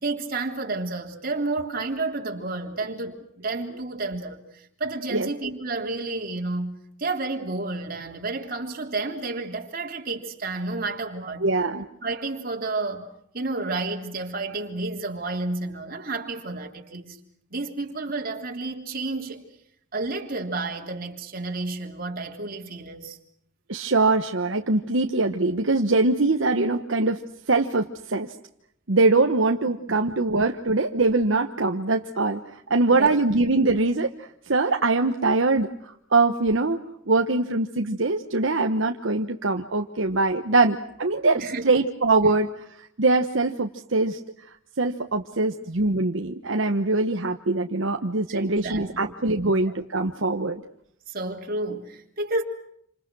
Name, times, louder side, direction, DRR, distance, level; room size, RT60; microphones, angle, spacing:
voice 1, 0.0-11.4 12.0-13.1 13.3-17.2 17.5-19.4 19.9-23.2 30.2-30.3 32.9-33.1 41.3-41.7 48.3-49.6 51.1-52.4, right 3 dB, 45° right, 3.4 m, -31 dB
voice 2, 11.4-11.9 23.7-27.2 27.5-28.3 28.9-35.7 36.1-36.8 37.1-42.5 42.8-44.2 44.8-50.6, right 3 dB, 70° right, 1.2 m, -23 dB
28.5 x 27.0 x 6.2 m
head